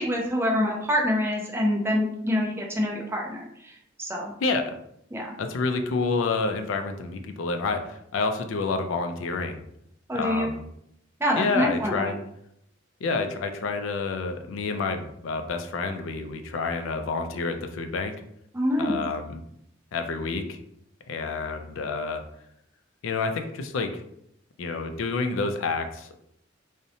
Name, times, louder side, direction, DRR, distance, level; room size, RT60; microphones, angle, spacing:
voice 1, 0.0-3.7 4.0-4.3 5.1-5.3 10.1-10.5 11.2-12.2 18.5-19.0, equal, 10° right, -1 dB, 0.4 m, -26 dB
voice 2, 4.4-4.7 5.4-9.6 10.1-10.6 11.4-12.2 13.0-18.1 18.8-19.4 19.9-20.6 21.1-22.2 23.0-24.0 24.6-26.2, left 4 dB, 70° left, 6 dB, 0.3 m, -28 dB
2.6 x 2.1 x 2.7 m, 0.75 s
head